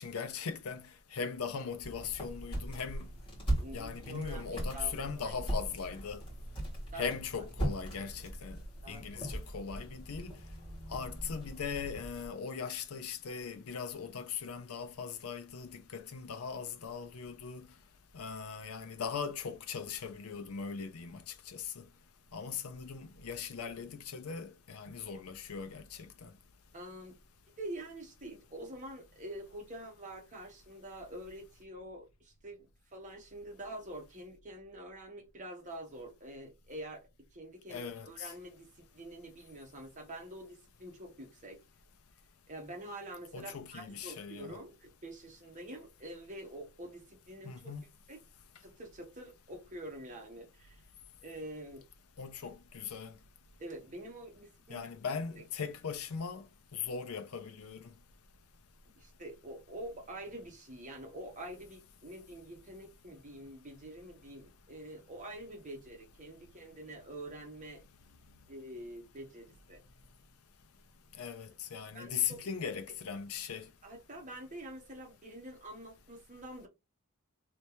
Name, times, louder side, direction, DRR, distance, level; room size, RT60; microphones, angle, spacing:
voice 1, 0.0-3.1 3.7-6.2 6.9-8.6 8.9-10.4 10.9-17.7 18.1-21.9 22.3-26.3 37.7-38.3 43.3-44.6 47.4-47.8 52.2-53.2 54.7-56.4 56.7-57.9 71.2-73.7, left 6 dB, 80° left, 0.5 m, -39 dB
sound 1, 1.8-12.3, right 1 dB, 25° left, 1.9 m, -39 dB
voice 2, 3.6-5.4 6.9-7.1 8.8-9.4 26.7-27.2 27.6-41.6 42.5-47.7 48.1-48.2 48.6-50.8 51.2-51.8 53.6-54.9 55.4-55.5 59.0-67.8 68.5-69.8 71.9-72.5 73.8-76.7, right 1 dB, 35° right, 1.1 m, -46 dB
3.2 x 2.9 x 2.9 m
head